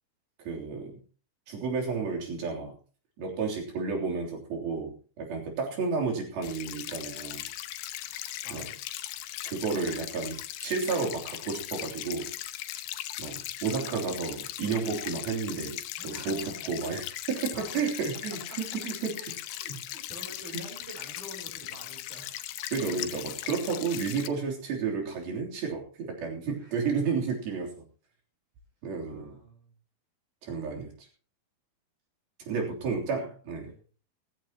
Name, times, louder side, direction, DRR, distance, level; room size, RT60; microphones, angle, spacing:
voice 1, 0.4-1.0 1.5-2.7 3.2-7.4 8.5-8.7 9.4-12.3 13.2-19.1 19.7-19.8 22.7-27.7 28.8-29.4 30.4-31.1 32.5-33.7, right 5 dB, 75° right, 0 dB, 5.2 m, -32 dB
sound 1, 6.4-24.3, left 14 dB, 85° left, 2.8 m, -39 dB
voice 2, 8.4-8.8 16.0-16.5 17.3-17.9 18.8-22.4 26.6-26.9 28.9-29.7 32.5-32.6 32.9-33.3 33.6-33.8, right 1 dB, 55° right, -2 dB, 5.4 m, -48 dB
17.0 x 15.0 x 2.9 m, 0.38 s
omnidirectional pair, 4.4 m